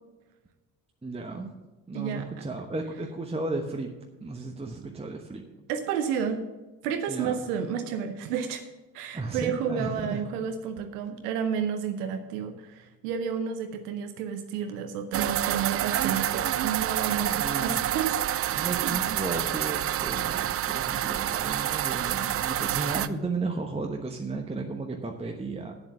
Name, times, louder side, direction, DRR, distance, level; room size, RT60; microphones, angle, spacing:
voice 1, 1.0-1.5 1.9-5.4 7.1-7.4 9.1-10.2 17.4-17.8 18.5-25.7, right 3 dB, 15° right, 2 dB, 1.0 m, -34 dB
voice 2, 1.9-2.5 5.7-6.4 6.8-8.6 8.9-18.2, right 7 dB, 75° right, 7 dB, 0.8 m, -31 dB
sound 1, 15.1-23.1, right 12 dB, 30° right, 0.4 m, -28 dB
8.2 x 7.4 x 7.2 m, 1.1 s
hypercardioid pair, 50°, 47 cm